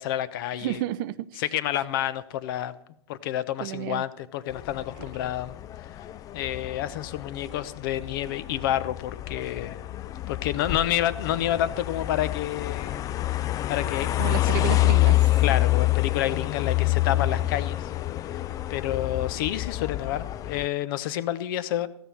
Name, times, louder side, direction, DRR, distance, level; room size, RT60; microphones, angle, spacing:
voice 1, 0.0-0.8 1.4-2.7 3.1-5.5 5.9-6.0 6.3-9.8 10.3-14.1 15.4-17.9 18.3-21.9, left 12 dB, 55° left, 0.8 m, -29 dB
voice 2, 0.6-1.4 3.6-4.0 14.2-15.2, right 14 dB, 50° right, 0.6 m, -31 dB
sound 1, 4.5-20.7, left 16 dB, 25° left, 0.4 m, -27 dB
15.5 x 5.5 x 7.5 m
hypercardioid pair, 105°, 14 cm